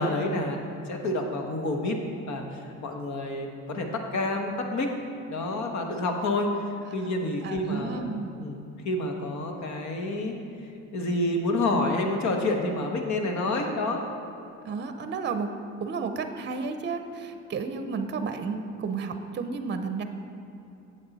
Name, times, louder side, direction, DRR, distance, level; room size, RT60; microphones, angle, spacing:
voice 1, 0.0-2.0 2.3-4.9 5.3-6.5 6.9-8.0 8.4-8.6 8.8-10.3 10.9-14.0, left 2 dB, 70° left, 3 dB, 1.1 m, -28 dB
voice 2, 7.4-8.3 14.6-15.5 15.8-20.0, right 4 dB, 35° right, 8 dB, 0.6 m, -32 dB
8.6 x 7.1 x 4.1 m, 2.7 s
cardioid pair, 90°, 30 cm